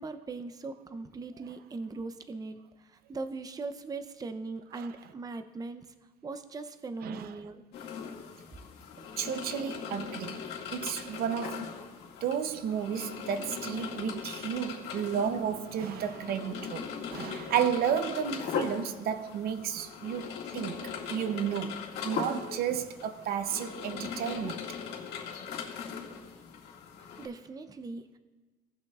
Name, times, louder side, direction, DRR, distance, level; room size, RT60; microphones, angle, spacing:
voice 1, 0.0-5.9 6.2-7.6 27.2-28.2, right 3 dB, 20° right, 0.6 m, -40 dB
voice 2, 7.0-7.3 9.0-10.4 10.7-11.7 12.2-24.6, right 8 dB, 65° right, 0.6 m, -32 dB
Coffee Brewing Background, 7.7-27.3, left 7 dB, 80° left, 2.0 m, -39 dB
18.0 x 6.2 x 2.4 m
cardioid pair, 110°, 17 cm